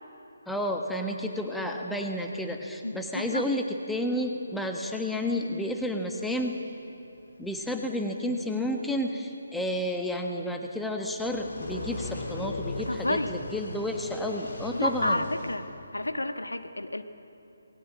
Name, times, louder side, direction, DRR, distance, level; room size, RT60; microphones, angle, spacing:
voice 1, 0.5-6.6 7.4-15.2, left 1 dB, ahead, 2 dB, 1.3 m, -31 dB
voice 2, 2.8-3.5 4.5-4.6 12.8-13.3 14.7-15.7 15.9-17.0, left 1 dB, 75° left, 8 dB, 1.3 m, -30 dB
sound 1, 11.1-15.6, left 2 dB, 45° left, 3.8 m, -38 dB
28.0 x 20.0 x 7.5 m, 3.0 s
figure-of-eight pair, 145°, 0 cm